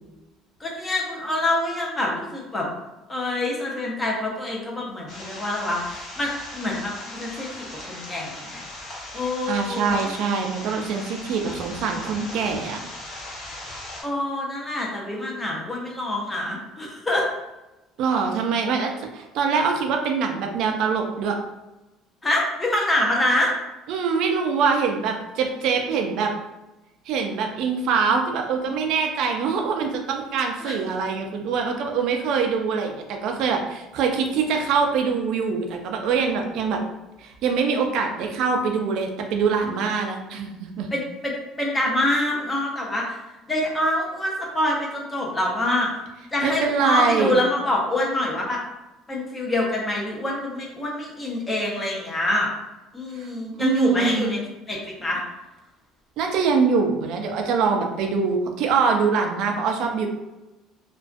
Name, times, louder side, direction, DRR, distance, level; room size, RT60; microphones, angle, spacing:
voice 1, 0.6-2.7 3.1-8.6 9.1-10.1 14.0-17.3 22.2-23.5 30.6-30.7 40.9-43.2 43.5-45.9 46.3-48.6 49.1-52.5 52.9-54.4 54.7-55.2, left 1 dB, 15° left, -2 dB, 0.5 m, -26 dB
sound 1, 5.1-14.0, left 1 dB, 45° left, 0.8 m, -38 dB
voice 2, 9.2-12.8 18.0-21.4 23.9-26.3 27.1-36.8 37.2-40.9 46.4-47.4 53.2-53.3 53.6-54.3 56.2-60.1, right 5 dB, 60° right, 3 dB, 0.3 m, -24 dB
2.4 x 2.2 x 2.4 m, 1.0 s
cardioid pair, 140°, 0 cm